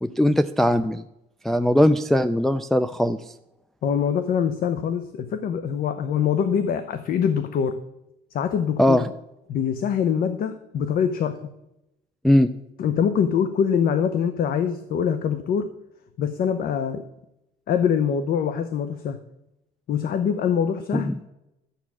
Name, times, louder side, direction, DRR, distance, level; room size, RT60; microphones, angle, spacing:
voice 1, 0.0-1.0 1.4-3.2 8.8-9.0 12.2-12.5 20.9-21.2, left 1 dB, ahead, 7 dB, 0.4 m, -20 dB
voice 2, 3.8-7.8 8.3-9.0 9.5-11.4 12.8-15.7 16.2-17.0 17.7-19.2 19.9-21.1, left 7 dB, 60° left, 10 dB, 0.8 m, -24 dB
11.5 x 8.4 x 6.2 m, 0.89 s
cardioid pair, 110°, 17 cm